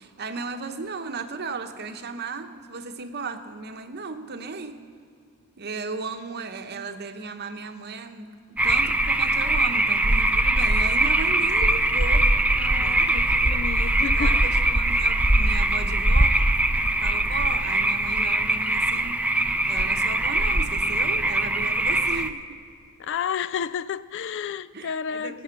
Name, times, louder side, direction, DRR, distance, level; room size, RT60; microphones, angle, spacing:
voice 1, 0.0-4.8 5.6-12.3 12.8-13.3 13.8-16.4 17.0-19.3 19.7-22.6 24.7-25.4, right 4 dB, 50° right, 0.9 m, -35 dB
sound 1, 8.6-22.3, right 1 dB, 5° right, 0.5 m, -22 dB
voice 2, 12.6-14.4 23.0-25.4, left 7 dB, 60° left, 0.3 m, -31 dB
19.0 x 9.2 x 5.8 m
head